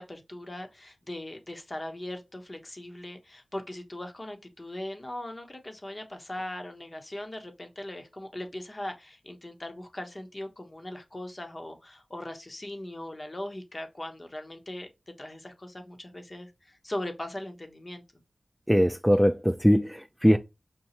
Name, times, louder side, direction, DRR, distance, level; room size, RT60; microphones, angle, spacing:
voice 1, 0.0-14.9 15.2-18.0, left 1 dB, 40° left, 1.0 m, -39 dB
voice 2, 18.7-20.4, equal, ahead, 0.3 m, -21 dB
5.3 x 2.3 x 2.9 m
cardioid pair, 45°, 0 cm